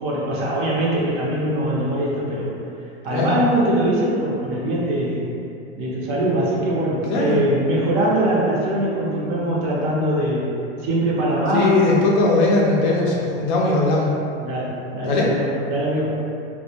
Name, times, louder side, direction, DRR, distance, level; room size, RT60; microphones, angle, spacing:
voice 1, 0.0-2.5 3.0-5.3 5.8-10.5 10.8-11.7 14.4-16.2, right 1 dB, 40° right, -6 dB, 0.6 m, -22 dB
voice 2, 7.1-7.4 11.5-14.1 15.0-15.3, left 2 dB, 45° left, -3 dB, 0.4 m, -19 dB
2.2 x 2.1 x 2.8 m, 2.6 s
hypercardioid pair, 120°, 34 cm